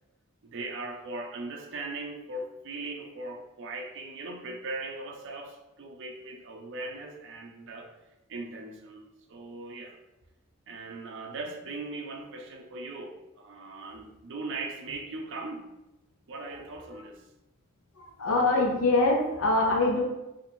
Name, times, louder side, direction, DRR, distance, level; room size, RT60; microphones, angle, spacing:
voice 1, 0.4-7.9 8.3-9.0 9.3-10.0 10.7-15.7 16.3-17.2, right 2 dB, 60° right, 2 dB, 0.5 m, -39 dB
voice 2, 18.0-20.0, left 2 dB, 70° left, -1 dB, 0.7 m, -24 dB
2.8 x 2.7 x 4.3 m, 0.96 s
head